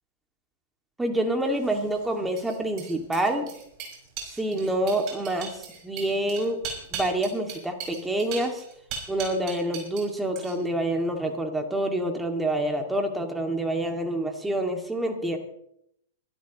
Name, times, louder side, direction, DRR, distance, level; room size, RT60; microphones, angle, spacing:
voice 1, 1.0-3.5 4.4-6.6 6.9-8.6 9.1-15.4, right 1 dB, 10° right, 4 dB, 2.3 m, -27 dB
sound 1, 1.5-10.1 10.4-10.8, right 6 dB, 45° right, 5.7 m, -39 dB
23.5 x 12.5 x 3.1 m, 0.75 s
hypercardioid pair, 110°, 0 cm